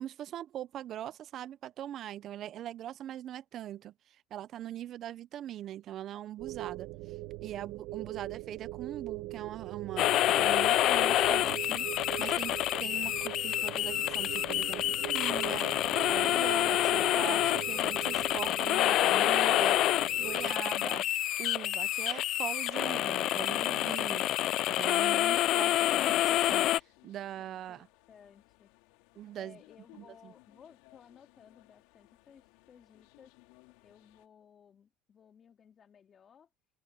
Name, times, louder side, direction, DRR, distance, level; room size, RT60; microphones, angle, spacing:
voice 1, 0.0-6.9 7.4-19.8 20.2-21.1 21.4-24.2 24.7-27.9 29.2-29.6 30.0-30.3, right 12 dB, 45° right, 0.5 m, -41 dB
sound 1, 6.4-20.6, right 18 dB, 65° right, 1.1 m, -41 dB
voice 2, 7.6-8.3 27.4-28.7 29.3-33.4 33.8-36.5, left 7 dB, 30° left, 2.8 m, -59 dB
sound 2, 10.0-26.8, left 14 dB, 50° left, 0.4 m, -28 dB
sound 3, 22.8-34.3, left 24 dB, 75° left, 3.7 m, -62 dB
supercardioid pair, 125°, 0 cm